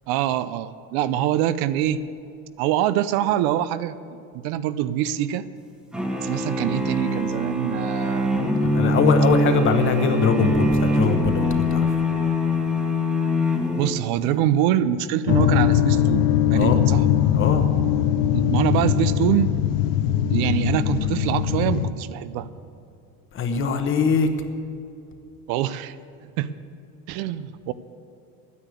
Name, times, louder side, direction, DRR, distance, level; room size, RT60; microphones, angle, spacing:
voice 1, 0.1-2.0 2.6-4.0 4.4-5.5 6.2-8.4 13.8-17.1 18.3-19.5 20.3-22.5 25.5-26.0 26.2-26.6 27.1-27.7, right 11 dB, 75° right, 15 dB, 0.6 m, -24 dB
sound 1, 5.9-14.3, left 1 dB, ahead, 1.0 m, -23 dB
voice 2, 8.6-11.9 16.5-16.8 17.4-17.7 23.3-24.3, left 6 dB, 35° left, 7 dB, 1.0 m, -21 dB
sound 2, 15.3-21.9, left 10 dB, 60° left, 0.7 m, -21 dB
11.5 x 9.7 x 8.3 m, 2.5 s
cardioid pair, 160°, 38 cm